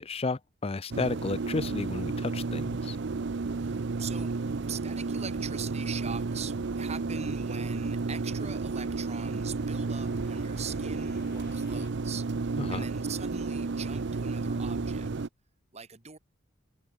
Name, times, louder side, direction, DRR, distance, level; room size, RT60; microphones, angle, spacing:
voice 1, 0.0-3.0 12.7-12.8, left 3 dB, 30° left, 0.6 m, -32 dB
sound 1, 0.9-15.3, right 4 dB, 60° right, 0.6 m, -32 dB
voice 2, 3.6-4.4 4.7-15.1 15.7-16.2, right 6 dB, 35° right, 1.5 m, -42 dB
Crowd, 4.4-15.1, left 1 dB, 75° left, 4.3 m, -56 dB
sound 2, 6.2-11.9, left 1 dB, 55° left, 5.7 m, -51 dB
head